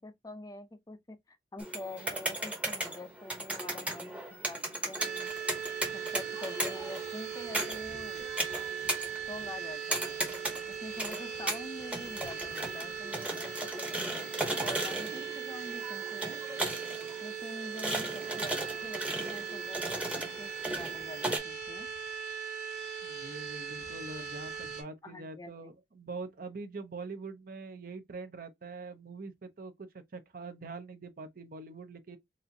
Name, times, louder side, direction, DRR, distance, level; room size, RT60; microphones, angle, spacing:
voice 1, 0.0-4.6 4.9-5.3 5.9-8.4 9.1-10.2 10.7-16.4 17.2-21.9 25.0-25.7, left 1 dB, 20° left, 0.5 m, -46 dB
sound 1, 1.6-21.4, right 1 dB, 10° right, 0.8 m, -37 dB
sound 2, 5.0-24.8, right 8 dB, 85° right, 1.5 m, -39 dB
voice 2, 23.0-32.2, right 3 dB, 50° right, 0.6 m, -44 dB
4.2 x 2.5 x 2.6 m
head